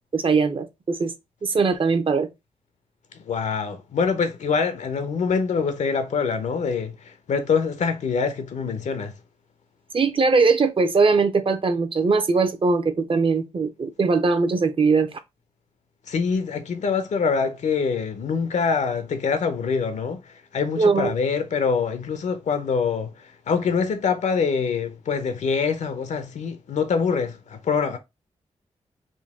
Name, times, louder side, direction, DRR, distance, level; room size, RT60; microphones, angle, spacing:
voice 1, 0.1-1.1 1.4-2.3 9.9-15.2 20.8-21.1, right 4 dB, 50° right, 0.6 m, -21 dB
voice 2, 3.3-9.1 16.1-20.2 20.5-28.0, left 5 dB, 80° left, 0.7 m, -25 dB
3.8 x 2.2 x 3.6 m
cardioid pair, 70°, 12 cm